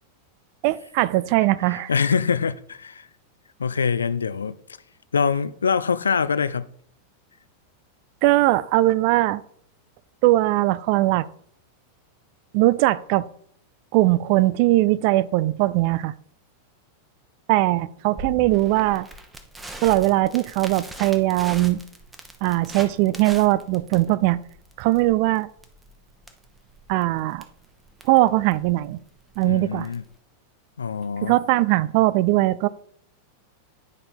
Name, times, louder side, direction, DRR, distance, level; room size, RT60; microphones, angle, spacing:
voice 1, 0.6-1.9 8.2-9.4 10.2-11.3 12.5-13.3 13.9-16.1 17.5-19.1 19.8-21.8 22.4-24.4 24.8-25.5 26.9-27.4 28.1-29.0 29.4-29.9 31.2-32.7, right 17 dB, 45° right, 0.3 m, -20 dB
voice 2, 1.9-3.1 3.6-4.6 5.1-6.7 29.4-30.0 30.8-31.4, left 6 dB, 70° left, 0.4 m, -24 dB
Crackle, 18.2-30.1, right 1 dB, 10° right, 1.1 m, -41 dB
9.6 x 5.1 x 4.3 m
figure-of-eight pair, 90°, 0 cm